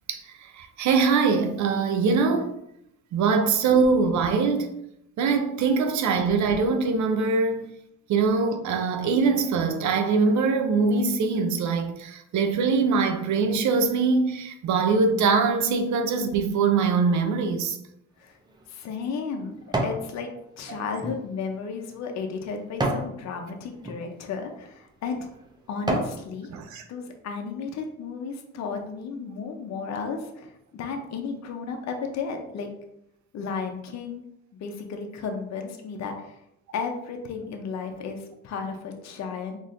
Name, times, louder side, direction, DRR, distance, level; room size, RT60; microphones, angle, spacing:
voice 1, 0.6-2.5 3.1-4.8 5.2-7.7 8.1-17.8 20.7-20.8 26.5-26.8, right 4 dB, 70° right, 0.6 m, -23 dB
sound 1, 18.2-20.1 20.5-23.1 23.7-24.0 24.7-24.8 25.3-26.2 26.7-26.8, right 1 dB, 15° right, 0.7 m, -31 dB
voice 2, 18.7-19.5 19.8-20.3 20.6-25.3 25.7-26.5 26.9-32.7 33.3-34.2 34.6-36.3 36.7-39.6, left 5 dB, 60° left, 0.7 m, -33 dB
4.0 x 3.0 x 2.5 m
cardioid pair, 90°, 30 cm